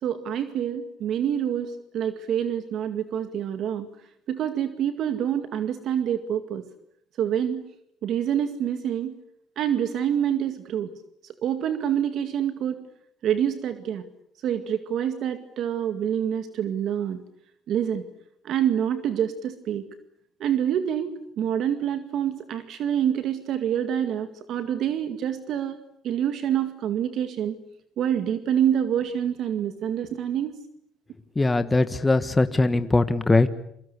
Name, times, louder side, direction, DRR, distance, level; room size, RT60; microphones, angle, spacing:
voice 1, 0.0-3.9 4.3-6.6 7.2-7.6 8.0-9.2 9.6-10.9 11.4-12.8 13.2-14.0 14.4-17.2 17.7-18.0 18.4-19.8 20.4-25.8 26.0-27.5 28.0-30.5, right 9 dB, 65° right, 9 dB, 2.1 m, -26 dB
voice 2, 31.3-33.5, left 2 dB, 15° left, 10 dB, 1.5 m, -21 dB
28.0 x 23.5 x 8.3 m, 0.72 s
cardioid pair, 100°, 0 cm